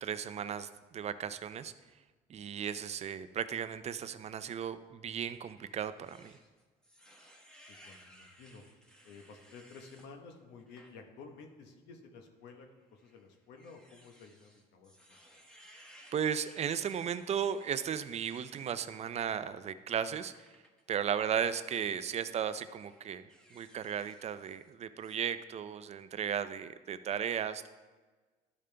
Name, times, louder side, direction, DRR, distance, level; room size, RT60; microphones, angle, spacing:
voice 1, 0.0-1.7 2.3-6.4 16.1-20.3 20.9-27.7, right 8 dB, 40° right, 12 dB, 0.5 m, -35 dB
sound 1, 5.3-10.1 10.6-10.9 11.4-11.5 12.6-18.7 20.2-20.8 21.8-22.0 22.5-24.7 25.0-25.2, equal, 5° left, 1.1 m, -60 dB
voice 2, 7.7-8.6 9.0-15.4, left 4 dB, 85° left, 4 dB, 1.1 m, -53 dB
12.5 x 5.2 x 3.3 m, 1.3 s
cardioid pair, 110°, 17 cm